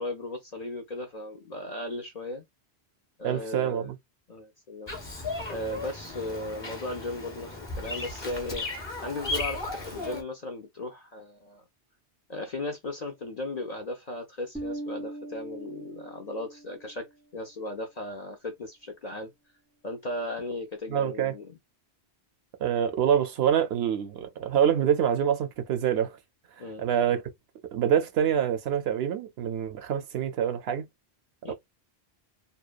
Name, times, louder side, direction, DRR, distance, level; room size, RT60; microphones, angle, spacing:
voice 1, 0.0-2.4 3.2-3.9 4.3-11.6 12.3-19.3 19.8-21.6 26.6-26.9 31.4-31.5, left 2 dB, 55° left, 0.5 m, -36 dB
voice 2, 3.2-4.0 20.9-21.3 22.6-26.1 26.8-27.2 27.7-30.9 31.5-31.6, right 9 dB, 70° right, 0.8 m, -26 dB
Bird vocalization bird call bird song, 4.9-10.2, left 2 dB, 30° left, 0.7 m, -35 dB
Bass guitar, 14.5-17.0, right 1 dB, 10° right, 0.4 m, -39 dB
2.8 x 2.1 x 2.4 m
omnidirectional pair, 1.1 m